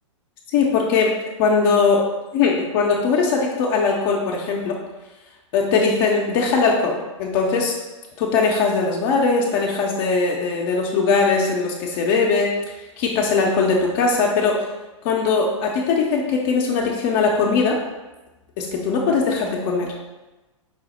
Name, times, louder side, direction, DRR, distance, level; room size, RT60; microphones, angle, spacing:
voice 1, 0.5-2.1 2.3-4.7 5.5-7.7 8.2-14.7 15.0-17.8 18.6-19.9, left 4 dB, 45° left, -1 dB, 0.6 m, -20 dB
4.8 x 2.0 x 4.1 m, 1.1 s
hypercardioid pair, 115°, 17 cm